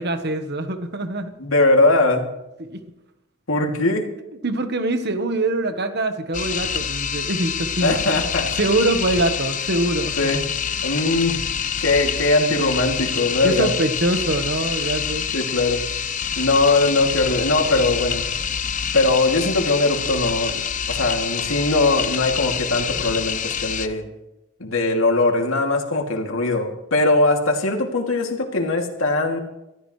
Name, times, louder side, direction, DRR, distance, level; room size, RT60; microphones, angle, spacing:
voice 1, 0.0-1.3 2.6-2.8 4.4-8.2 8.6-10.3 13.4-15.2 16.3-16.4, right 2 dB, 50° right, 8 dB, 1.3 m, -24 dB
voice 2, 1.4-2.3 3.5-4.1 7.8-8.5 10.2-10.5 10.8-11.4 11.8-13.7 15.3-15.8 16.4-18.3 18.9-24.0 24.6-29.4, left 2 dB, 80° left, 2 dB, 2.7 m, -20 dB
sound 1, 6.3-23.9, left 7 dB, 40° left, 0.8 m, -26 dB
24.0 x 14.0 x 3.3 m, 0.92 s
head